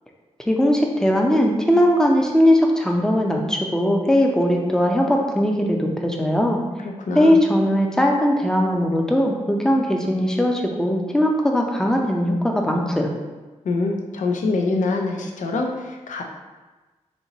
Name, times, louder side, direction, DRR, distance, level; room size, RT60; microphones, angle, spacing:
voice 1, 0.5-6.6 7.1-13.1, equal, 5° left, 0 dB, 0.6 m, -19 dB
voice 2, 7.0-7.4 13.6-16.2, left 3 dB, 85° left, 1 dB, 0.5 m, -24 dB
4.4 x 2.8 x 2.8 m, 1.2 s
cardioid pair, 80°, 13 cm